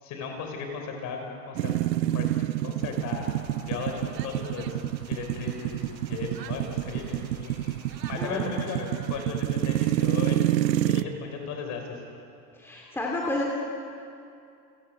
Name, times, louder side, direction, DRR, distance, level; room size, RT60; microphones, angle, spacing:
voice 1, 0.0-1.8 2.1-2.3 2.6-3.3 3.6-3.9 4.2-4.8 5.1-5.8 6.1-7.5 8.1-10.5 10.8-12.0, left 6 dB, 35° left, 3 dB, 5.3 m, -36 dB
sound 1, 1.6-11.0, right 13 dB, 90° right, 0.9 m, -28 dB
sound 2, 2.8-8.3, left 2 dB, 20° left, 6.0 m, -50 dB
voice 2, 8.2-8.7 12.5-13.5, left 1 dB, 5° left, -2 dB, 2.6 m, -31 dB
30.0 x 17.0 x 7.7 m, 2.5 s
supercardioid pair, 140°, 49 cm